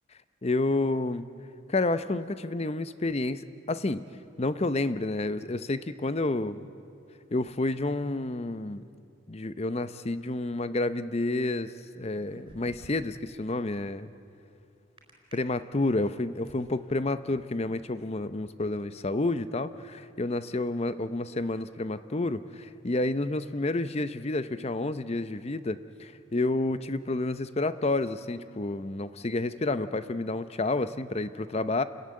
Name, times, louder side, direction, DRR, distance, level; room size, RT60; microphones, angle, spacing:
voice 1, 0.4-1.3 1.7-4.0 4.4-6.7 7.3-8.8 9.3-14.1 15.3-31.8, left 2 dB, 30° left, 13 dB, 0.6 m, -30 dB
sound 1, 12.0-13.3 15.0-15.3 15.9-16.6, equal, 25° right, 4.3 m, -51 dB
28.5 x 14.0 x 9.6 m, 2.7 s
head